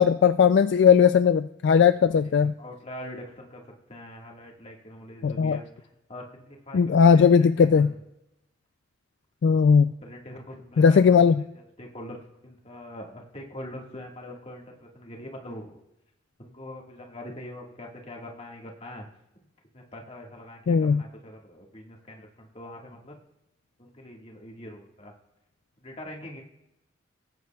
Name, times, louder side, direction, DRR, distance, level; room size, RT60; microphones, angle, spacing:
voice 1, 0.0-2.5 5.2-5.6 6.7-7.9 9.4-9.9 10.8-11.3 20.7-21.0, left 6 dB, 60° left, 11 dB, 0.3 m, -18 dB
voice 2, 1.8-2.3 2.6-3.6 3.9-6.8 7.1-7.9 10.0-11.2 11.5-15.8 16.4-19.1 19.7-23.2 23.8-25.1 25.8-26.4, left 1 dB, 30° left, 0 dB, 1.7 m, -43 dB
19.0 x 9.4 x 2.3 m, 0.89 s
head